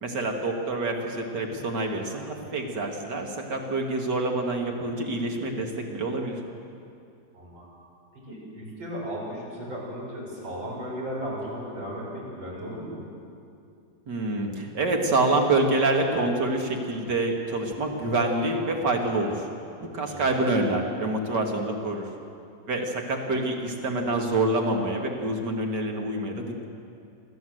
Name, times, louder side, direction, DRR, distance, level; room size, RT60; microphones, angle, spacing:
voice 1, 0.0-6.4 14.1-19.5 19.8-22.1 22.7-26.7, right 2 dB, 65° right, 2 dB, 2.8 m, -27 dB
voice 2, 7.3-7.9 8.3-13.1 20.0-20.3, equal, 85° right, -5 dB, 7.5 m, -36 dB
27.0 x 13.5 x 8.0 m, 2.5 s
omnidirectional pair, 2.0 m